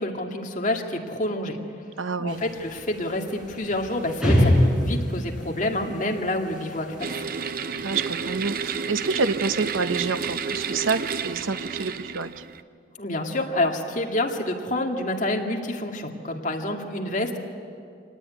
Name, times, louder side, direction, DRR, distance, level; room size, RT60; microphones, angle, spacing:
voice 1, 0.0-1.6 2.2-7.2 13.0-17.4, left 1 dB, 40° left, 2 dB, 2.0 m, -28 dB
voice 2, 2.0-2.4 7.8-12.4, right 4 dB, 90° right, 11 dB, 0.9 m, -28 dB
sound 1, 2.3-11.5, equal, 5° right, 6.1 m, -28 dB
sound 2, 7.0-12.6, right 6 dB, 45° right, 0.6 m, -31 dB
25.0 x 18.5 x 9.5 m, 2.4 s
head